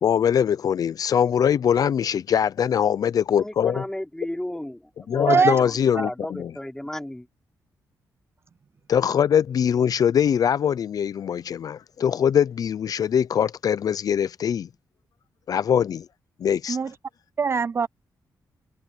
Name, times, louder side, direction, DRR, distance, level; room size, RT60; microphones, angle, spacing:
voice 1, 0.0-3.8 5.1-6.1 6.4-6.5 8.9-14.7 15.5-16.1 16.4-16.8, left 8 dB, 60° left, 0.5 m, -22 dB
voice 2, 3.4-7.3, left 1 dB, 5° left, 3.9 m, -34 dB
voice 3, 5.3-5.6 16.7-16.9 17.4-17.9, right 5 dB, 35° right, 0.3 m, -21 dB
cardioid pair, 95°, 7 cm